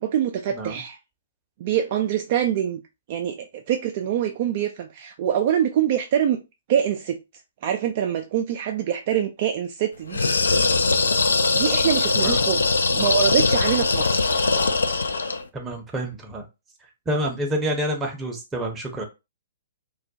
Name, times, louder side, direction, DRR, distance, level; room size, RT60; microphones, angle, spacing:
voice 1, 0.0-1.0 1.6-2.8 3.1-6.4 6.7-7.2 7.6-10.2 11.5-12.6 12.9-14.3, right 9 dB, 45° right, 0.3 m, -24 dB
sound 1, 10.1-15.4, left 3 dB, 75° left, 0.4 m, -21 dB
voice 2, 15.5-16.4 17.1-19.0, equal, 15° right, 0.7 m, -28 dB
2.3 x 2.0 x 2.7 m
figure-of-eight pair, 120°, 0 cm